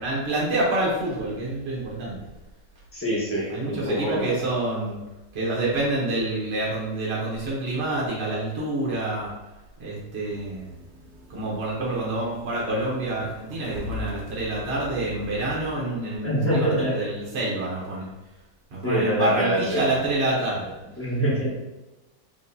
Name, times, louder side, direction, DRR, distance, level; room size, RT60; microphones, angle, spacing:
voice 1, 0.0-2.3 3.5-5.0 5.3-9.3 9.8-10.7 11.3-18.1 18.7-20.7, right 2 dB, 45° right, -5 dB, 1.0 m, -27 dB
voice 2, 2.9-4.3 16.2-17.0 18.8-19.9 21.0-21.5, equal, 10° left, -7 dB, 0.9 m, -25 dB
sound 1, 10.3-15.7, left 3 dB, 65° right, 0.6 m, -41 dB
4.9 x 3.1 x 2.7 m, 1.1 s
omnidirectional pair, 1.9 m